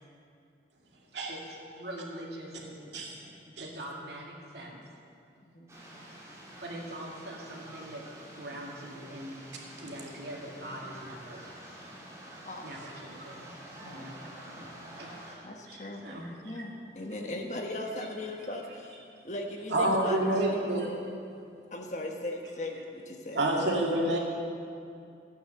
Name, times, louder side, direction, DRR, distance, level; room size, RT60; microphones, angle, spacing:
voice 1, 1.3-3.0 3.5-4.8 6.6-8.0 8.3-9.5 9.8-11.5 12.6-13.5 13.8-14.7 15.0-16.6 18.5-18.6 20.0-20.1 20.8-20.9, right 1 dB, 65° right, -2 dB, 2.3 m, -43 dB
voice 2, 2.9-3.7 9.8-9.9 19.7-20.9 23.3-24.2, right 1 dB, 90° right, -2 dB, 2.3 m, -28 dB
sound 1, 5.7-15.4, right 1 dB, 15° right, 2.3 m, -48 dB
voice 3, 13.8-14.3 14.5-15.2 15.4-16.0 16.4-18.9 19.2-20.5 21.7-23.4, left 1 dB, 40° left, 2 dB, 1.2 m, -38 dB
13.5 x 8.8 x 6.9 m, 2.5 s
head